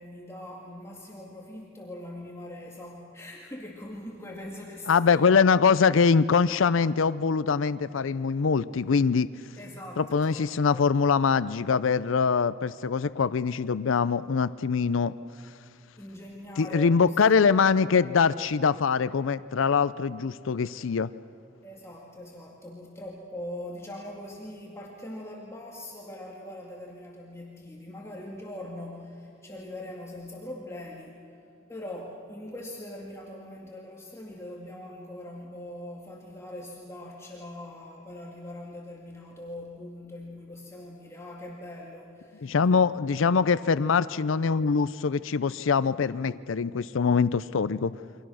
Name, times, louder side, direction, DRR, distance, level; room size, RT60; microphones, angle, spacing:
voice 1, 0.0-5.3 9.6-10.8 16.0-17.7 21.6-31.3 31.7-42.5 43.2-43.4, left 1 dB, 15° left, -2 dB, 2.2 m, -42 dB
voice 2, 4.9-9.3 10.0-15.1 16.6-21.1 42.4-47.9, left 5 dB, 70° left, 16 dB, 0.5 m, -23 dB
29.0 x 24.5 x 6.3 m, 2.4 s
head